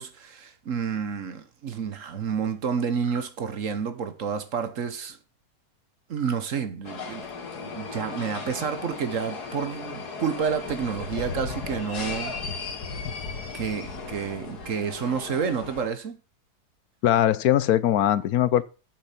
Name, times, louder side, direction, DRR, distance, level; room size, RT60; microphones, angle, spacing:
voice 1, 0.0-5.2 6.1-7.3 7.6-12.3 13.5-16.2, right 6 dB, 55° right, 1.3 m, -29 dB
sound 1, 2.9-3.3 6.1-6.5, right 4 dB, 80° right, 2.2 m, -43 dB
sound 2, 6.8-15.9, left 4 dB, 90° left, 2.1 m, -36 dB
voice 2, 17.0-18.6, left 12 dB, 75° left, 1.1 m, -21 dB
8.5 x 7.2 x 5.8 m
omnidirectional pair, 1.7 m